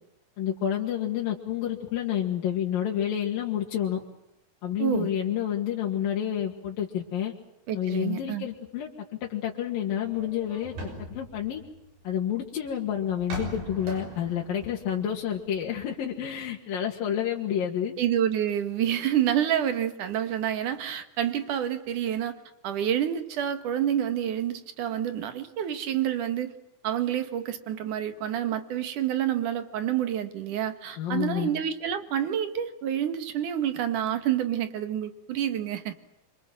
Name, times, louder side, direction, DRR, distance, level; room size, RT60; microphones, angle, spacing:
voice 1, 0.4-4.0 4.6-7.3 7.7-8.9 9.2-10.7 11.1-11.6 12.0-17.9 31.0-31.5, left 10 dB, 65° left, -2 dB, 3.8 m, -29 dB
voice 2, 4.8-5.1 7.7-8.5 18.0-22.3 22.6-26.5 26.8-35.9, right 10 dB, 60° right, 10 dB, 3.1 m, -28 dB
sound 1, 10.0-12.3 13.1-15.9 16.2-16.3, right 1 dB, 80° right, 8.1 m, -40 dB
27.0 x 25.5 x 7.8 m, 0.83 s
omnidirectional pair, 4.4 m